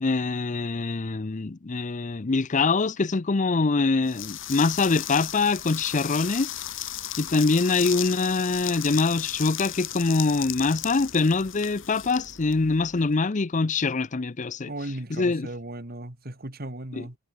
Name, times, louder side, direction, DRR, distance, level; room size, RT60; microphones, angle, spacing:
voice 1, 0.0-6.6 7.2-14.7 15.1-15.5 17.0-17.1, left 3 dB, 40° left, 0.6 m, -24 dB
sound 1, 4.1-13.0, left 12 dB, 70° left, 5.4 m, -35 dB
voice 2, 14.7-17.2, right 1 dB, 50° right, 2.7 m, -36 dB
head